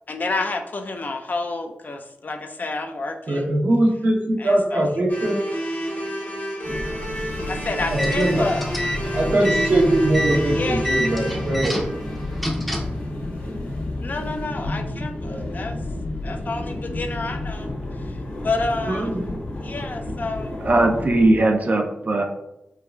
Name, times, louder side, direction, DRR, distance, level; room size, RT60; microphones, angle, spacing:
voice 1, 0.1-3.5 4.4-4.9 7.5-8.7 10.5-10.9 14.0-15.8 16.2-19.1 19.6-20.5, left 3 dB, 50° left, 5 dB, 0.4 m, -29 dB
voice 2, 3.3-5.4 7.9-8.5 9.1-11.8 15.2-15.5 18.9-19.3, right 1 dB, 60° right, -2 dB, 0.8 m, -21 dB
sound 1, 5.1-13.2, equal, 65° left, 1.3 m, -31 dB
sound 2, 6.6-21.3, left 1 dB, 85° left, 1.3 m, -31 dB
sound 3, 7.8-13.0, equal, ahead, 0.6 m, -28 dB
voice 3, 20.6-22.2, right 2 dB, 45° right, 3 dB, 0.4 m, -19 dB
4.5 x 2.3 x 2.3 m, 0.87 s
cardioid pair, 55°, 4 cm